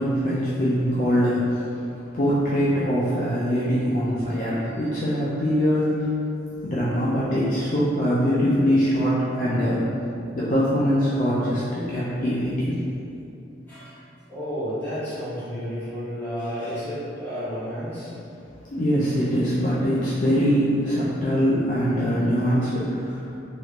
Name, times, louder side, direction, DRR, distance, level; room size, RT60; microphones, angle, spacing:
voice 1, 0.0-1.8 2.1-6.1 6.6-9.9 10.3-12.8 18.7-23.4, equal, 45° left, -9 dB, 0.4 m, -23 dB
voice 2, 14.3-18.1, equal, 10° left, -14 dB, 1.2 m, -31 dB
3.1 x 3.0 x 2.4 m, 2.7 s
head